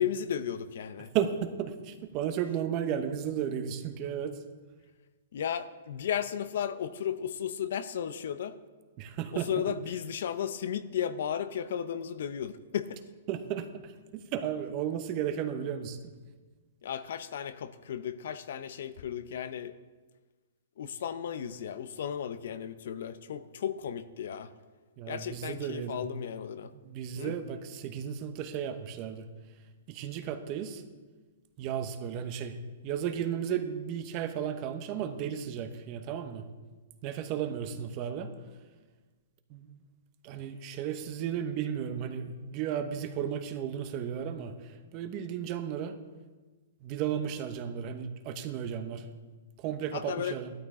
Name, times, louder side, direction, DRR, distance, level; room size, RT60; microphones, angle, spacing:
voice 1, 0.0-1.1 5.3-8.6 9.3-13.0 16.8-19.8 20.8-24.5 25.1-26.7 27.2-27.4 49.9-50.4, left 9 dB, 65° left, 13 dB, 0.6 m, -34 dB
voice 2, 1.1-4.4 9.0-9.5 13.3-16.0 25.0-26.1 26.6-29.3 29.9-30.8 31.6-32.6 32.8-36.4 37.0-38.3 39.5-39.8 40.2-46.0 46.8-49.1 49.6-50.5, right 9 dB, 30° right, 8 dB, 0.9 m, -34 dB
13.5 x 12.5 x 3.7 m, 1.3 s
hypercardioid pair, 160°, 0 cm